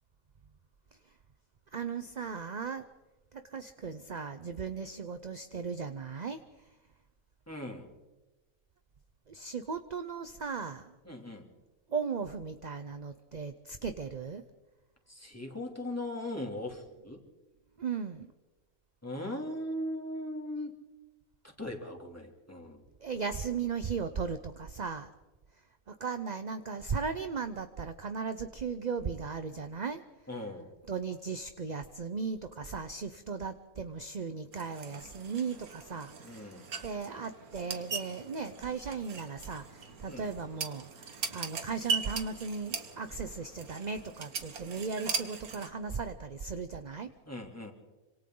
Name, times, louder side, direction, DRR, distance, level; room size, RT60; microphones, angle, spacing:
voice 1, 1.7-2.8 3.3-6.4 9.3-10.9 11.9-14.4 17.8-18.3 23.0-25.1 25.9-30.0 30.9-47.1, right 5 dB, 40° right, 9 dB, 0.7 m, -37 dB
voice 2, 7.5-7.9 11.0-11.5 15.1-17.2 19.0-20.9 21.6-22.8 30.3-30.7 36.2-36.6 40.1-40.3 47.3-47.7, left 1 dB, 10° left, 0 dB, 3.0 m, -39 dB
sound 1, 34.5-45.7, right 5 dB, 90° right, 2.0 m, -40 dB
27.0 x 26.0 x 3.9 m, 1.1 s
omnidirectional pair, 1.5 m